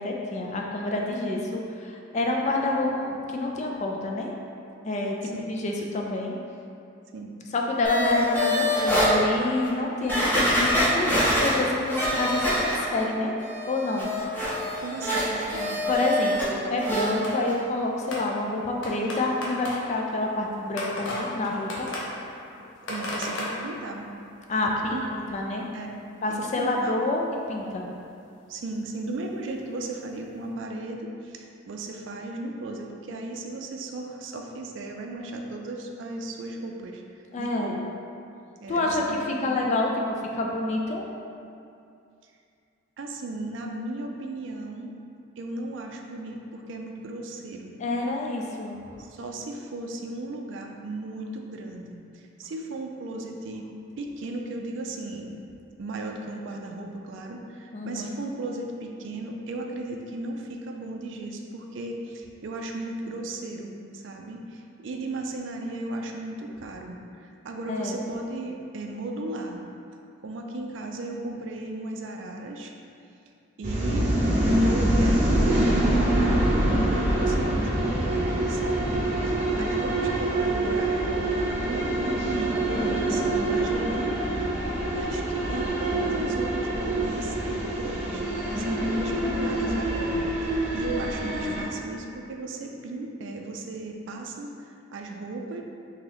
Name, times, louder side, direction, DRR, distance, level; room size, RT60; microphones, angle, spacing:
voice 1, 0.0-4.4 4.8-6.4 7.5-13.3 13.7-14.2 15.9-21.9 22.6-22.7 24.5-25.7 26.2-27.2 27.5-27.9 37.3-37.7 38.7-40.0 40.3-41.0 47.8-48.8 57.7-58.1 67.7-68.0 79.5-79.7 82.7-83.0, left 2 dB, 35° left, 0 dB, 0.3 m, -28 dB
sound 1, 7.8-9.1 9.6-9.7 10.1-13.1 13.4-16.5 16.8-17.1 17.5-17.6, equal, 10° left, 0.7 m, -25 dB
voice 2, 14.8-15.8 22.9-24.1 24.6-25.2 25.7-25.9 26.3-27.0 28.5-37.0 37.4-37.8 38.6-39.7 43.0-44.9 45.4-47.8 49.0-53.7 54.0-55.3 55.8-69.7 70.2-72.7 73.6-74.1 74.6-84.2 84.9-88.2 88.6-95.6, right 2 dB, 70° right, 2 dB, 0.4 m, -36 dB
sound 2, 17.2-17.6 18.1-24.2 25.1-25.2 25.4-25.5 26.0-26.1 27.4-27.5 28.0-28.1 29.5-29.6 30.5-30.6, left 1 dB, 70° left, 0.6 m, -36 dB
sound 3, 73.6-91.6, right 1 dB, 35° right, 0.8 m, -25 dB
3.0 x 2.8 x 3.8 m, 2.5 s
head